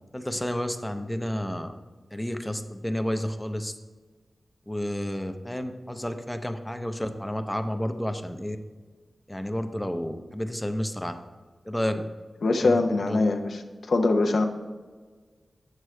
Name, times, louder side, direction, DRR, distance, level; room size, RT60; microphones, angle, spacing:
voice 1, 0.1-1.7 2.1-3.7 4.7-8.6 9.3-11.1 11.6-12.0 12.6-13.2, equal, 5° left, 7 dB, 0.5 m, -31 dB
voice 2, 12.4-13.6 13.9-14.4, left 3 dB, 75° left, 4 dB, 0.7 m, -22 dB
7.9 x 6.3 x 3.2 m, 1.4 s
wide cardioid pair, 125°, 0 cm